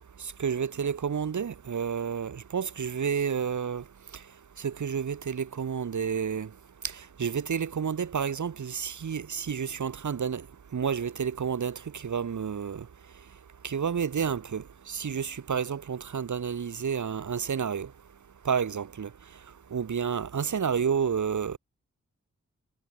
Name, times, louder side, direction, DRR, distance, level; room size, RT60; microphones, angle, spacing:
voice 1, 0.2-3.8 4.6-6.5 6.8-10.4 10.7-12.8 13.6-17.9 18.4-19.1 19.7-21.6, right 7 dB, 70° right, 1.1 m, -30 dB
cardioid pair, 45°, 31 cm